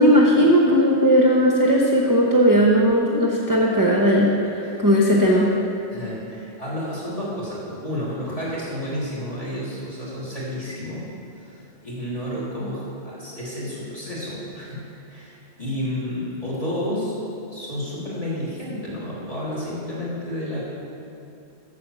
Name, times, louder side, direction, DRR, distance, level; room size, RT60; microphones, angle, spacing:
voice 1, 0.0-5.5, equal, 20° right, -2 dB, 0.8 m, -17 dB
voice 2, 5.9-11.1 11.3-14.8 15.1-17.1 17.5-20.6, left 1 dB, 30° left, -8 dB, 3.0 m, -31 dB
8.5 x 6.9 x 6.8 m, 2.7 s
omnidirectional pair, 1.2 m